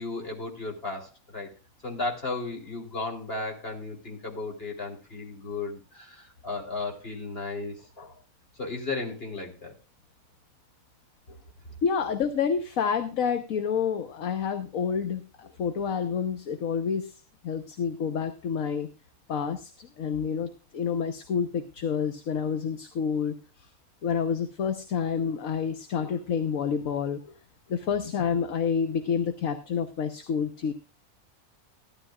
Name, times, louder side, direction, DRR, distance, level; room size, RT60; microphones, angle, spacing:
voice 1, 0.0-1.5 1.8-8.1 8.6-9.7, left 3 dB, 40° left, 0 dB, 3.7 m, -35 dB
voice 2, 11.8-18.9 19.3-23.7 24.0-27.3 27.7-30.7, left 6 dB, 65° left, 8 dB, 1.4 m, -29 dB
16.0 x 12.5 x 2.4 m, 0.31 s
omnidirectional pair, 1.6 m